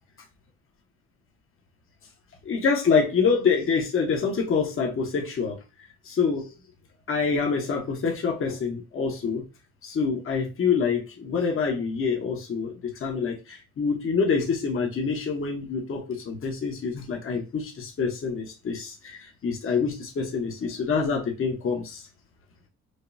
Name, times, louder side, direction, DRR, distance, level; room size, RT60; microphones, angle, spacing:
voice 1, 2.4-5.6 6.1-6.4 7.1-9.4 9.8-22.0, left 5 dB, 45° left, 1 dB, 1.2 m, -26 dB
5.2 x 2.4 x 2.7 m, 0.29 s
cardioid pair, 90°, 30 cm